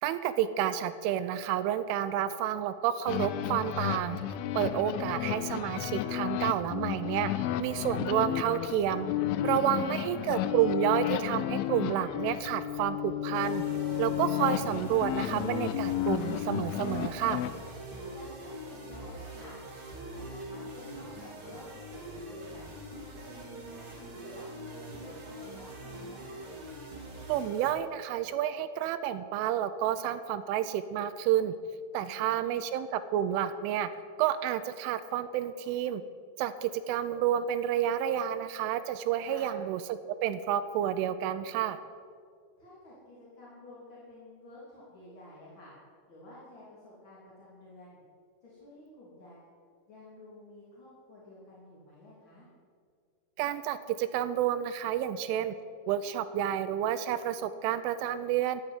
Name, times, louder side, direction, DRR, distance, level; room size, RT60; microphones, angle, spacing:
voice 1, 0.0-4.2 4.6-7.3 7.6-9.1 9.4-13.6 14.0-17.4 27.3-31.5 31.9-33.9 34.2-36.0 36.4-41.8 53.4-55.5 55.9-58.6, right 10 dB, 85° right, 11 dB, 3.0 m, -30 dB
sound 1, 3.1-17.5, left 12 dB, 85° left, 3.1 m, -32 dB
sound 2, 13.3-27.7, right 1 dB, 35° right, 2.8 m, -43 dB
voice 2, 18.1-19.5 19.8-22.6 23.2-26.5 31.9-32.8 39.2-39.6 42.6-45.7 46.1-48.0 48.4-49.5 49.9-52.5, left 1 dB, 25° left, -7 dB, 3.3 m, -51 dB
13.0 x 9.2 x 9.8 m, 2.2 s
omnidirectional pair, 5.7 m